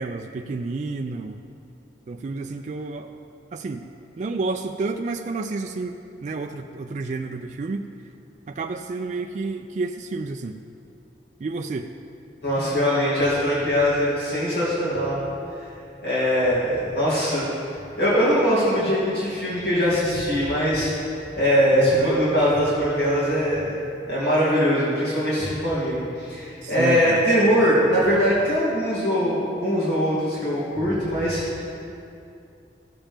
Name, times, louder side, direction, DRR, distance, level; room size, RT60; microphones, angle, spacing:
voice 1, 0.0-1.4 2.1-3.1 3.5-3.8 4.2-6.0 6.2-7.8 8.5-10.6 11.4-11.9 21.7-22.1 26.6-27.2, right 3 dB, 40° right, 4 dB, 0.3 m, -30 dB
voice 2, 12.4-15.2 16.0-17.5 17.9-20.9 21.3-23.8 24.0-31.6, equal, 65° left, -10 dB, 2.7 m, -21 dB
15.0 x 7.3 x 3.5 m, 2.6 s
head